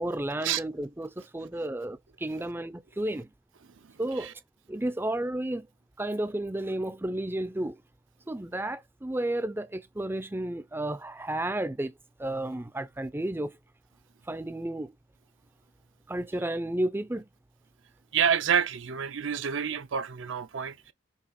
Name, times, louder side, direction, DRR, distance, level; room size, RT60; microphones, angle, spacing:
voice 1, 0.0-3.3 4.0-4.3 4.7-5.7 6.0-7.8 8.3-11.9 12.2-13.6 14.3-14.9 16.1-17.2, right 1 dB, 10° right, 0.5 m, -32 dB
voice 2, 18.1-20.9, right 8 dB, 60° right, 0.5 m, -28 dB
7.1 x 3.3 x 4.7 m
head